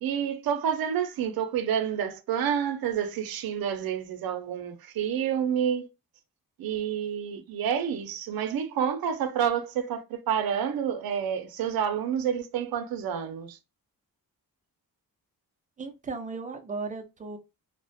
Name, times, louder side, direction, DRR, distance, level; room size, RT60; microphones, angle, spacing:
voice 1, 0.0-5.9 6.6-13.6, right 8 dB, 75° right, 0.5 m, -29 dB
voice 2, 15.8-17.4, right 4 dB, 20° right, 0.4 m, -36 dB
2.4 x 2.1 x 2.5 m
wide cardioid pair, 140°, 36 cm